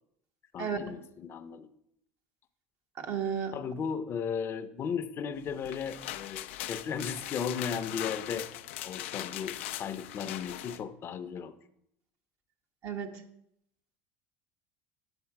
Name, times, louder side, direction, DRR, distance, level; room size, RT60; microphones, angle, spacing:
voice 1, 0.5-1.7 3.5-8.5 8.8-11.5, left 7 dB, 40° left, 10 dB, 0.7 m, -36 dB
voice 2, 3.0-3.5 12.8-13.2, right 7 dB, 55° right, 4 dB, 1.2 m, -33 dB
sound 1, 5.5-10.8, left 14 dB, 85° left, 0.4 m, -40 dB
8.9 x 6.8 x 4.7 m, 0.75 s
supercardioid pair, 110°, 6 cm